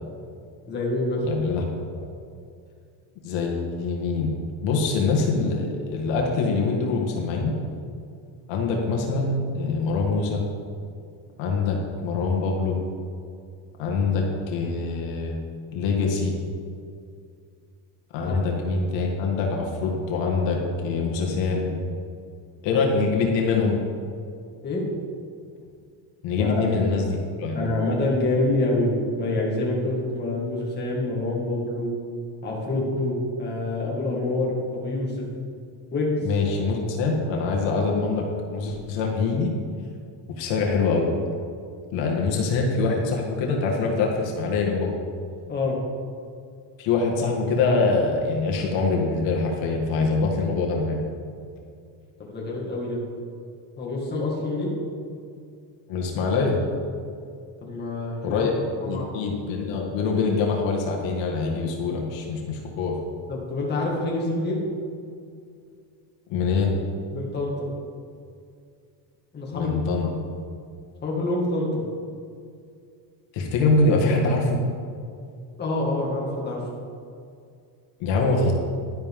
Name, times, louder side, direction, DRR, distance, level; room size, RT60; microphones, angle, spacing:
voice 1, 0.7-1.3 18.2-18.4 24.6-24.9 26.4-26.6 27.5-31.9 32.4-35.3 35.9-36.3 45.5-45.8 52.2-53.1 53.8-54.7 57.6-58.5 58.8-59.1 63.3-64.6 67.1-67.7 69.3-69.7 71.0-71.8 75.6-76.6, left 2 dB, 20° left, -4 dB, 2.1 m, -26 dB
voice 2, 1.2-1.6 3.2-4.3 4.6-7.5 8.5-10.4 11.4-12.8 13.8-15.4 15.7-16.4 18.1-21.7 22.6-23.8 26.2-27.6 36.2-38.2 38.5-39.5 40.3-41.1 41.9-44.9 46.8-51.0 55.9-56.6 58.2-58.5 58.9-63.0 66.3-66.7 69.5-70.1 73.3-74.6 78.0-78.5, left 4 dB, 75° left, 0 dB, 1.9 m, -24 dB
11.0 x 11.0 x 3.7 m, 2.4 s
cardioid pair, 170°, 45 cm